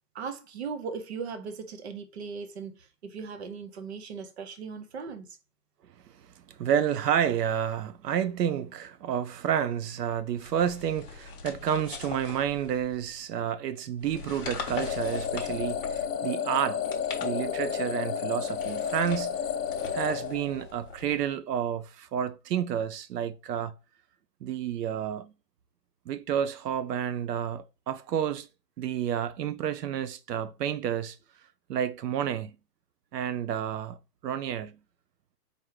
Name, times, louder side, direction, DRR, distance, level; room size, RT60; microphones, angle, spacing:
voice 1, 0.1-5.4, right 5 dB, 45° right, 0.6 m, -38 dB
voice 2, 6.2-16.8 17.2-19.3 19.9-23.7 24.4-25.3 26.1-28.5 28.8-31.2 31.7-32.6 33.1-34.0 34.2-34.8, right 9 dB, 85° right, 0.6 m, -30 dB
sound 1, 10.4-13.1 14.0-16.2 16.7-17.9 18.4-21.3, left 5 dB, 35° left, 0.7 m, -42 dB
sound 2, 14.8-20.9, left 7 dB, 85° left, 0.7 m, -32 dB
4.4 x 2.6 x 3.1 m
hypercardioid pair, 170°, 47 cm